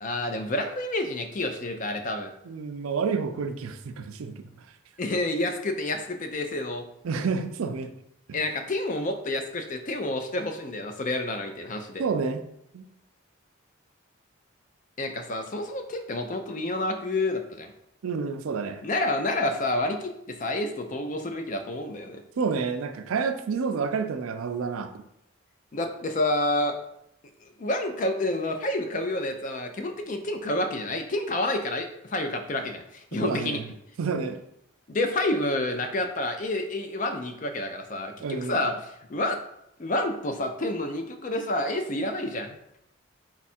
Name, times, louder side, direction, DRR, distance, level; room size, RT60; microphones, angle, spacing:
voice 1, 0.0-2.3 5.0-6.9 8.3-12.0 15.0-17.7 18.8-22.2 25.7-26.8 27.6-33.6 34.9-39.4 39.8-42.6, left 1 dB, 40° left, 6 dB, 0.4 m, -29 dB
voice 2, 2.5-4.3 7.0-7.9 8.3-8.4 12.0-12.4 12.7-12.8 18.0-18.8 22.4-24.9 33.2-33.6 34.0-34.4 38.2-38.6, right 5 dB, 85° right, 8 dB, 0.4 m, -29 dB
4.2 x 2.4 x 4.2 m, 0.77 s
head